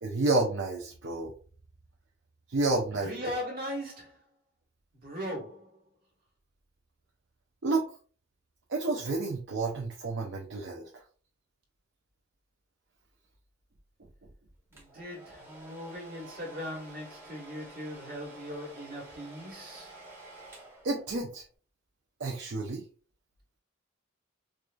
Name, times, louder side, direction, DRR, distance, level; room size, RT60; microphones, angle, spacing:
voice 1, 0.0-1.3 2.5-3.5 7.6-7.9 8.7-11.0 20.8-21.4 22.2-22.8, right 2 dB, 65° right, 0.6 m, -30 dB
voice 2, 3.0-4.2 4.9-5.8 14.7-20.0, equal, 50° right, 1.4 m, -39 dB
Domestic sounds home sounds, 14.7-21.4, right 1 dB, 10° right, 0.8 m, -50 dB
4.6 x 2.5 x 2.3 m
head